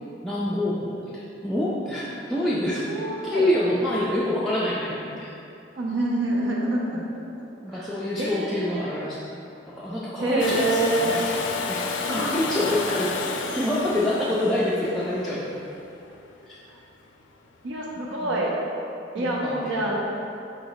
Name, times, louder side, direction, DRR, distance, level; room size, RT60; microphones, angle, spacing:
voice 1, 0.2-2.9 3.2-5.4 6.9-7.1 7.6-9.2 9.7-11.4 11.7-15.4 16.5-16.6 18.2-18.3 19.2-19.7, left 1 dB, ahead, -9 dB, 0.3 m, -27 dB
voice 2, 2.9-3.5 5.7-7.0 7.7-8.9 10.2-11.2 12.0-12.4 12.7-12.8 16.1-16.2 16.7-16.8 17.6-18.5 19.1-20.0, right 2 dB, 85° right, -3 dB, 0.5 m, -27 dB
Domestic sounds home sounds, 10.4-16.2 18.1-18.2, left 4 dB, 85° left, 0.4 m, -31 dB
4.0 x 3.0 x 3.9 m, 2.7 s
head